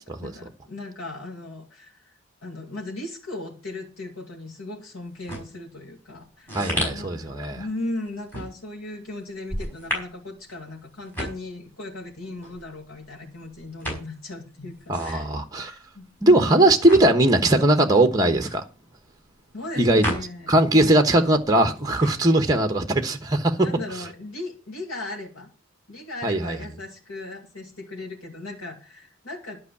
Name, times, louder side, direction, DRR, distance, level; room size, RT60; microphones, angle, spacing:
voice 1, 0.2-2.1 2.4-15.3 15.6-16.6 19.5-21.0 23.6-25.5 25.9-29.6, left 2 dB, 85° left, 2.9 m, -37 dB
sound 1, 5.0-20.8 21.0-22.6, equal, 10° left, 5.3 m, -35 dB
voice 2, 6.5-7.6 14.9-15.7 16.2-18.6 19.8-20.0 20.5-23.7 26.2-26.6, right 1 dB, 20° right, 1.1 m, -19 dB
11.5 x 5.5 x 8.5 m
head